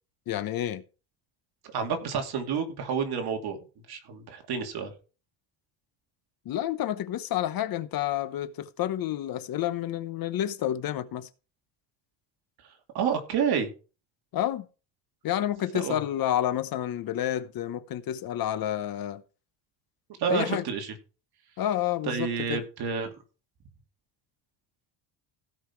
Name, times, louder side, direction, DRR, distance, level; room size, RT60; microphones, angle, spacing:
voice 1, 0.3-0.8 6.4-11.3 14.3-14.7 15.2-19.2 20.3-20.6 21.6-22.6, left 12 dB, 50° left, 0.9 m, -29 dB
voice 2, 1.7-3.6 3.9-4.9 12.9-13.7 15.7-16.0 20.2-20.9 22.1-23.1, right 6 dB, 55° right, 2.8 m, -29 dB
16.0 x 5.6 x 4.5 m
cardioid pair, 140°, 46 cm